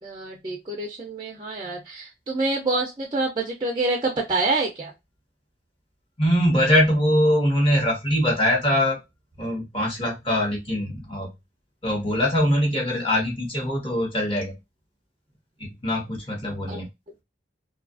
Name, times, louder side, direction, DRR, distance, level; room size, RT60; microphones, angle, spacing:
voice 1, 0.0-4.9 16.7-16.8, right 2 dB, 25° right, -1 dB, 0.4 m, -27 dB
voice 2, 6.2-9.0 9.4-11.3 11.8-14.5 15.6-16.9, equal, 25° left, 0 dB, 0.9 m, -22 dB
2.6 x 2.4 x 2.4 m, 0.22 s
head